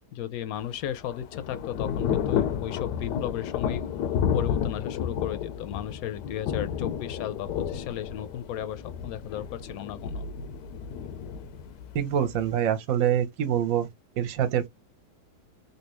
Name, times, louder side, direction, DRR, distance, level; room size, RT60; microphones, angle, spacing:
voice 1, 0.1-3.9 4.3-10.3, left 11 dB, 70° left, 0.9 m, -35 dB
Thunder / Rain, 0.6-12.5, left 8 dB, 90° left, 1.2 m, -31 dB
voice 2, 11.9-13.9 14.2-14.7, right 9 dB, 60° right, 1.1 m, -25 dB
3.3 x 2.6 x 3.0 m
omnidirectional pair, 1.8 m